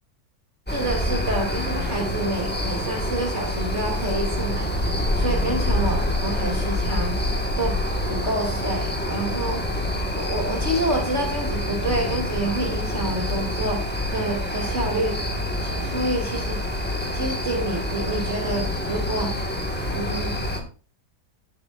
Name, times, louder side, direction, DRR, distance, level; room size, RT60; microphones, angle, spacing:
sound 1, 0.7-20.6, left 1 dB, 5° left, 1.5 m, -26 dB
voice 1, 0.7-4.9 5.1-7.2 7.6-7.7 8.1-9.6 10.1-15.2 15.6-16.6 17.1-19.3 19.9-20.4, right 1 dB, 45° right, 0 dB, 2.8 m, -28 dB
14.5 x 8.3 x 2.5 m, 0.37 s
omnidirectional pair, 1.7 m